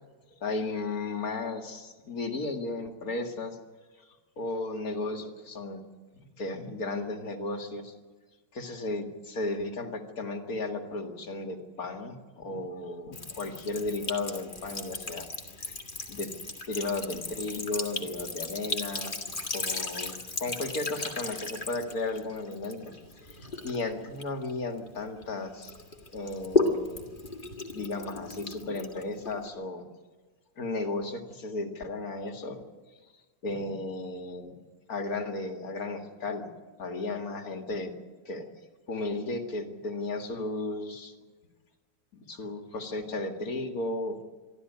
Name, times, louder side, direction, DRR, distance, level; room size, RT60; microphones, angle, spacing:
voice 1, 0.4-3.6 4.4-5.8 6.1-7.9 8.5-15.3 16.1-16.3 16.7-19.1 19.5-22.8 23.2-23.4 23.6-25.8 26.1-27.1 27.7-29.9 30.6-32.6 33.4-34.6 34.9-36.5 36.8-37.9 38.3-38.5 38.9-41.1 42.3-44.2, left 2 dB, 55° left, 5 dB, 2.5 m, -34 dB
Sink (filling or washing) / Trickle dribble, 13.1-25.2 25.6-29.5, left 3 dB, 30° left, 2.0 m, -35 dB
24.5 x 14.0 x 9.4 m, 1.3 s
omnidirectional pair, 1.9 m